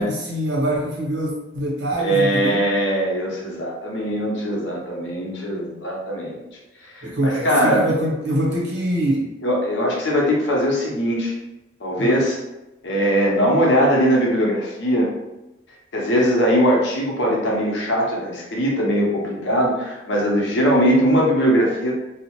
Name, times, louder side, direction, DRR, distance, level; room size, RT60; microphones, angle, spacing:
voice 1, 0.0-2.6 7.0-9.4 12.0-12.2, right 1 dB, 65° right, -3 dB, 0.7 m, -24 dB
voice 2, 2.0-6.5 6.9-7.8 9.4-11.3 11.8-12.4 12.8-15.1 15.9-21.9, equal, 70° left, -2 dB, 0.8 m, -20 dB
2.7 x 2.0 x 2.9 m, 0.97 s
head